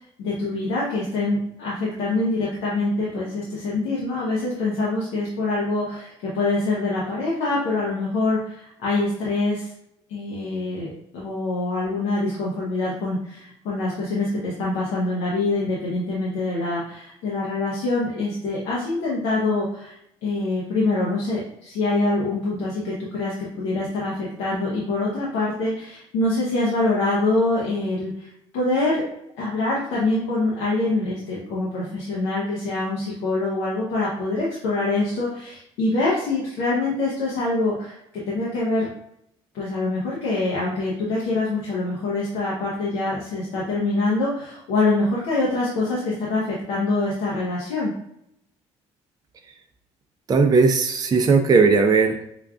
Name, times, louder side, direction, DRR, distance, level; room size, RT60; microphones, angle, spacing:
voice 1, 0.2-9.7 10.1-29.1 29.4-38.0 38.3-38.9 39.5-47.9, left 2 dB, 80° left, -5 dB, 0.8 m, -25 dB
voice 2, 50.3-52.3, right 4 dB, 25° right, 5 dB, 0.4 m, -17 dB
5.0 x 2.3 x 2.3 m, 0.76 s
supercardioid pair, 65°, 15 cm